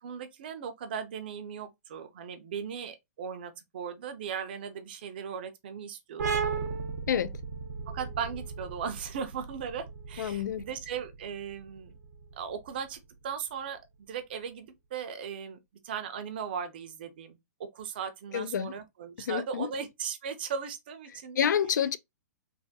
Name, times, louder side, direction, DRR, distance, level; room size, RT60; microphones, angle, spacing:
voice 1, 0.0-6.4 7.9-12.0 12.4-13.8 14.1-15.6 15.8-21.5, right 7 dB, 35° right, 0.4 m, -38 dB
sound 1, 6.2-13.5, right 5 dB, 75° right, 0.8 m, -36 dB
voice 2, 10.2-10.6 18.3-18.7 19.3-19.7 21.4-22.0, left 8 dB, 90° left, 0.4 m, -28 dB
3.2 x 2.2 x 2.6 m
hypercardioid pair, 175°, 9 cm